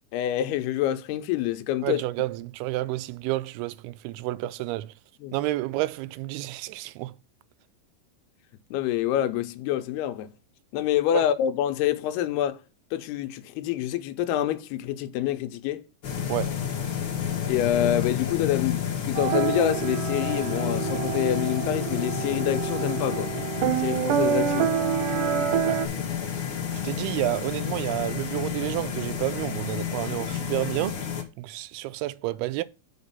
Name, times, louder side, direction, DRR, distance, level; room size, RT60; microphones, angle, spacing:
voice 1, 0.1-2.0 5.2-5.3 8.7-10.3 10.7-12.6 12.9-15.8 17.5-23.3 23.8-24.7, left 11 dB, 80° left, 2.6 m, -27 dB
voice 2, 1.8-4.9 5.3-7.2 11.1-11.3 16.3-16.6 25.7-25.8 26.7-31.0 31.4-32.6, right 17 dB, 85° right, 2.4 m, -30 dB
sound 1, 16.0-31.2, left 8 dB, 55° left, 1.4 m, -31 dB
sound 2, 19.2-25.9, right 10 dB, 65° right, 2.3 m, -27 dB
6.6 x 5.2 x 5.5 m
omnidirectional pair, 4.6 m